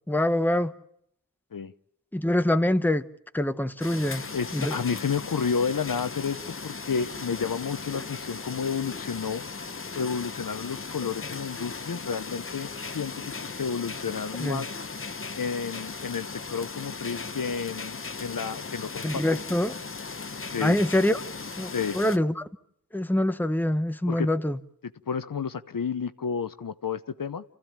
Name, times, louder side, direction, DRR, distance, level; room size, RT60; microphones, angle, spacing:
voice 1, 0.1-0.7 2.1-3.1 3.3-4.2 4.5-4.8 14.4-14.6 19.0-19.7 20.6-21.2 21.6-22.5 22.9-24.6, left 1 dB, 5° left, 0.9 m, -25 dB
sound 1, 3.8-22.2, left 4 dB, 35° left, 0.8 m, -37 dB
voice 2, 4.3-9.4 9.9-14.7 15.3-19.2 20.5-20.8 21.7-22.0 24.1-24.3 25.1-27.4, left 6 dB, 65° left, 0.8 m, -31 dB
28.5 x 15.0 x 8.8 m
wide cardioid pair, 60°, 36 cm